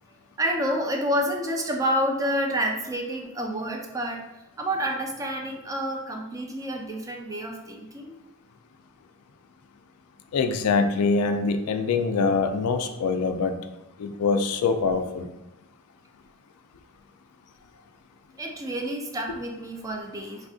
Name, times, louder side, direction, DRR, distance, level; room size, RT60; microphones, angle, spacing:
voice 1, 0.4-8.2 18.4-20.5, equal, 15° right, 2 dB, 0.3 m, -29 dB
voice 2, 10.3-13.5 14.0-15.3, left 4 dB, 85° left, 7 dB, 0.3 m, -24 dB
3.4 x 2.5 x 2.3 m, 0.96 s
head